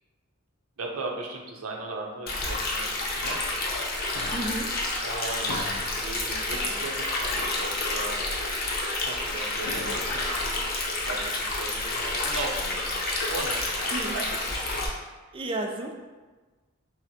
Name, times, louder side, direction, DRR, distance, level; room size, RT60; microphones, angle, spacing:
voice 1, 0.8-2.9 3.1-3.9 5.0-8.1 9.0-10.7 11.1-12.8 13.1-14.6, right 2 dB, 85° right, 1 dB, 0.6 m, -37 dB
Stream, 2.3-14.9, left 2 dB, 45° left, 0.6 m, -29 dB
sound 1, 4.1-5.1 5.5-6.7 7.0-7.1 8.1-8.2 9.2-9.3 9.7-10.4, left 2 dB, 85° left, 0.5 m, -41 dB
voice 2, 4.3-4.7 13.9-14.2 15.3-16.0, right 2 dB, 25° right, 2 dB, 0.3 m, -32 dB
5.8 x 2.1 x 2.7 m, 1.3 s
head